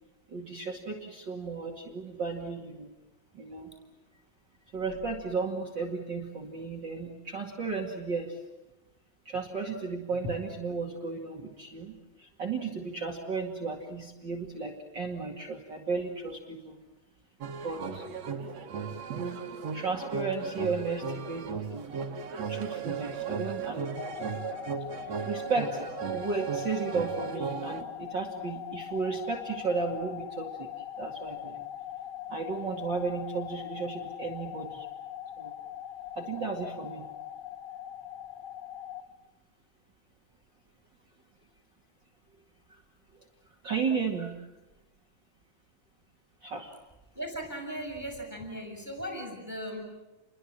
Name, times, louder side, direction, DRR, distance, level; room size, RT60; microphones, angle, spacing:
voice 1, 0.3-2.9 3.3-3.7 4.7-8.4 9.3-16.8 17.6-18.0 18.5-18.6 19.7-22.0 22.5-24.1 25.2-31.6 32.3-34.9 35.4-35.5 36.2-37.0 42.7-42.8 43.6-44.5 46.4-46.7, right 4 dB, 35° right, 0 dB, 2.5 m, -34 dB
sound 1, 17.4-27.8, right 6 dB, 55° right, 2.9 m, -36 dB
sound 2, 24.0-39.0, left 11 dB, 65° left, 1.0 m, -41 dB
voice 2, 47.1-49.8, equal, 5° right, 3 dB, 6.2 m, -37 dB
30.0 x 23.0 x 7.5 m, 1.0 s
omnidirectional pair, 3.8 m